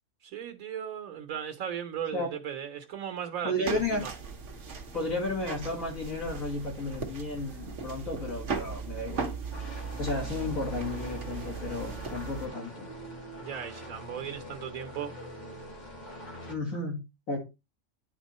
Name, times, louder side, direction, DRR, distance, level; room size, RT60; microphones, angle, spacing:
voice 1, 0.2-4.1 13.4-15.1, right 8 dB, 85° right, 1.3 m, -37 dB
voice 2, 3.4-4.0 4.9-9.2 10.0-12.9 16.5-17.4, left 2 dB, 75° left, 2.5 m, -33 dB
sound 1, 3.7-12.5, right 5 dB, 60° right, 1.3 m, -38 dB
sound 2, 9.5-16.5, equal, 35° left, 1.7 m, -44 dB
10.0 x 3.6 x 4.1 m
omnidirectional pair, 1.4 m